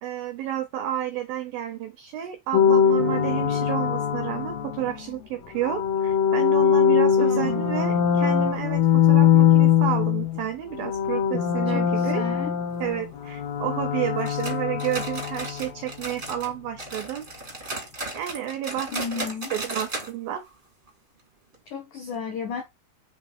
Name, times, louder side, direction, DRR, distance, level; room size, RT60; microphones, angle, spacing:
voice 1, 0.0-12.2 12.8-17.2 18.1-20.4, right 11 dB, 85° right, 2.0 m, -31 dB
sound 1, 2.5-5.0 5.6-10.5 10.7-15.7, left 8 dB, 70° left, 2.7 m, -22 dB
voice 2, 7.2-7.6 11.7-12.5 18.9-19.5 21.7-22.6, left 5 dB, 90° left, 1.7 m, -33 dB
sound 2, 14.2-16.5 16.8-20.1 20.4-20.5 20.9-21.0 21.5-21.6, right 2 dB, 30° right, 0.8 m, -35 dB
7.7 x 3.7 x 3.8 m
omnidirectional pair, 5.4 m